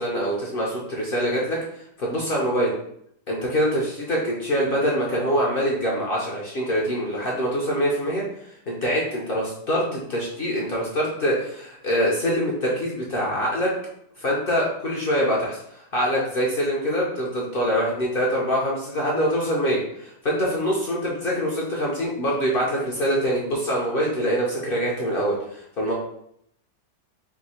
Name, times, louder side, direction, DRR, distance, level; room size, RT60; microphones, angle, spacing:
voice 1, 0.0-1.6 2.0-2.7 3.3-8.2 8.7-13.7 14.2-25.9, equal, 50° left, -4 dB, 0.7 m, -24 dB
3.6 x 2.6 x 4.3 m, 0.71 s
omnidirectional pair, 1.9 m